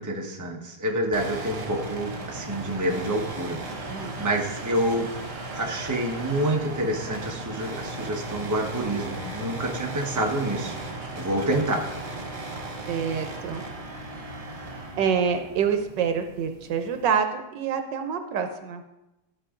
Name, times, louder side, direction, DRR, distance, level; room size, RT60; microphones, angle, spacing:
voice 1, 0.0-3.6 4.2-5.1 5.5-11.9, right 1 dB, 10° right, 0 dB, 1.1 m, -28 dB
sound 1, 1.1-17.1, right 2 dB, 35° right, 1.6 m, -36 dB
voice 2, 3.9-4.2 12.9-13.6 15.0-18.8, right 7 dB, 85° right, 7 dB, 1.6 m, -26 dB
13.0 x 6.4 x 3.8 m, 0.97 s
omnidirectional pair, 1.9 m